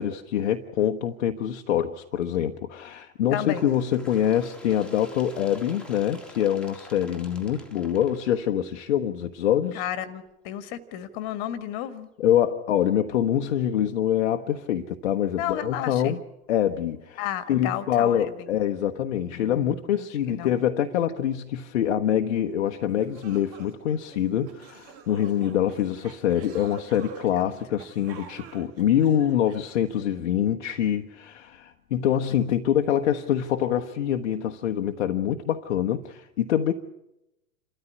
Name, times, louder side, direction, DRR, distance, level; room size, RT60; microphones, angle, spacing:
voice 1, 0.0-9.8 12.2-16.2 16.5-17.2 17.5-36.7, left 10 dB, 50° left, 1.1 m, -25 dB
voice 2, 3.3-3.7 9.8-12.1 15.4-16.2 17.2-18.5 19.3-19.8 20.3-20.6 27.3-27.8 28.2-28.3, left 11 dB, 35° left, 1.8 m, -33 dB
Bird, 3.5-8.9 9.8-9.9 10.3-10.4 11.3-11.4 12.3-12.4 13.3-13.4, left 1 dB, ahead, 2.4 m, -47 dB
sound 1, 22.6-22.7 23.0-30.1, right 6 dB, 35° right, 2.5 m, -47 dB
28.5 x 13.5 x 9.8 m
figure-of-eight pair, 105°, 43 cm